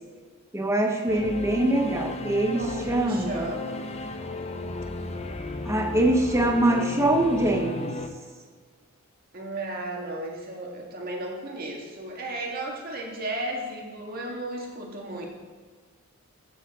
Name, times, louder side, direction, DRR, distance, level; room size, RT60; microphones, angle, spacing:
voice 1, 0.5-3.5 5.6-8.0, right 1 dB, 10° right, 3 dB, 0.8 m, -24 dB
Singing / Musical instrument, 1.1-8.1, left 3 dB, 30° left, 0.6 m, -34 dB
voice 2, 2.5-3.9 9.3-15.2, right 1 dB, 40° right, -1 dB, 1.8 m, -34 dB
14.5 x 7.1 x 3.6 m, 1.5 s
head